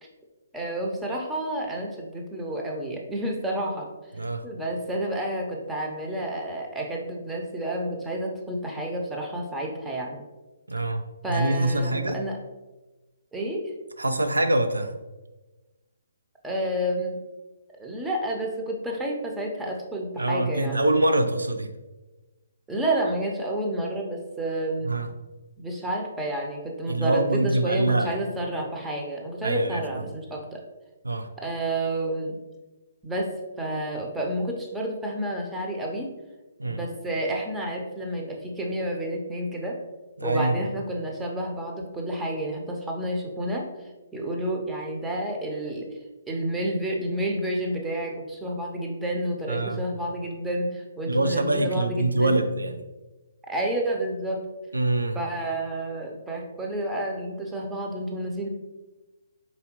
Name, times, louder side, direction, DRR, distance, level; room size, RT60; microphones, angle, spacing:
voice 1, 0.5-3.9 4.4-10.2 11.2-12.4 13.3-13.7 16.4-17.2 17.8-20.9 22.7-24.9 25.6-30.6 31.4-32.4 33.0-36.1 36.6-39.8 40.2-43.7 44.1-45.9 46.3-52.4 53.5-54.5 55.1-58.5, right 1 dB, 10° right, 0 dB, 0.6 m, -30 dB
voice 2, 10.7-11.0 11.3-12.2 14.0-14.9 20.2-21.7 24.8-25.1 26.9-28.1 29.4-30.1 31.0-31.3 36.6-36.9 40.2-40.5 49.5-49.8 51.1-52.8 54.7-55.2, right 2 dB, 85° right, 8 dB, 0.4 m, -24 dB
4.3 x 3.4 x 3.0 m, 1.2 s
figure-of-eight pair, 135°, 0 cm